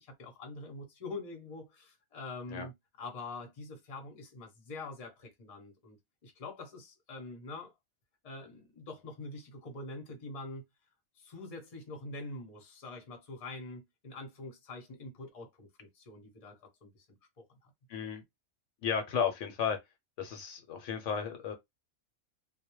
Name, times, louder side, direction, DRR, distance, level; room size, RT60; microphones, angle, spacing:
voice 1, 0.0-6.0 6.2-7.7 8.2-10.6 11.2-17.1 17.4-17.7, left 2 dB, 35° left, 0.6 m, -45 dB
voice 2, 17.9-18.2 18.8-19.8 20.2-21.5, left 7 dB, 70° left, 0.9 m, -33 dB
2.2 x 2.1 x 2.9 m
omnidirectional pair, 1.4 m